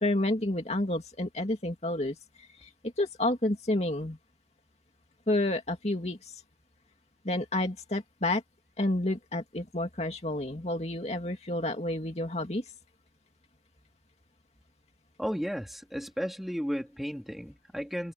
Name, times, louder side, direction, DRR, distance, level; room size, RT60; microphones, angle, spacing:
voice 1, 0.0-2.7 3.0-4.2 5.3-6.3 7.2-8.4 8.8-12.6, left 1 dB, 35° left, 2.5 m, -30 dB
voice 2, 15.2-18.1, equal, ahead, 3.5 m, -34 dB
head